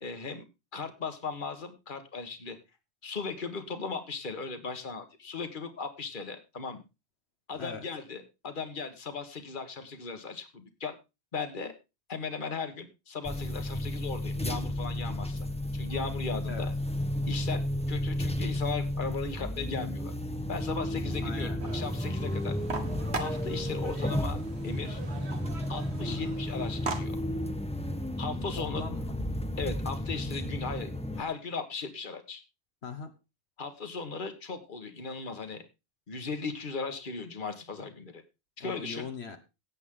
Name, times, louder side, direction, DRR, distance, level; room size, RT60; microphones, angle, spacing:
voice 1, 0.0-0.5 0.7-2.6 3.0-6.8 7.5-10.9 11.3-11.7 12.1-15.5 15.7-16.7 17.3-20.1 20.5-22.5 23.2-25.0 25.7-27.2 28.2-28.8 29.6-30.9 31.2-32.4 33.6-35.6 36.1-38.2 38.6-39.1, left 4 dB, 50° left, 7 dB, 1.6 m, -37 dB
voice 2, 7.5-7.9 16.5-16.7 21.2-21.6 26.0-26.4 28.6-29.1 32.8-33.1 38.6-39.4, left 5 dB, 75° left, 6 dB, 1.6 m, -40 dB
sound 1, 13.2-31.2, left 1 dB, 5° left, 0.9 m, -33 dB
sound 2, 21.6-27.0, right 4 dB, 80° right, 1.9 m, -40 dB
17.0 x 8.4 x 3.7 m, 0.28 s
omnidirectional pair, 1.1 m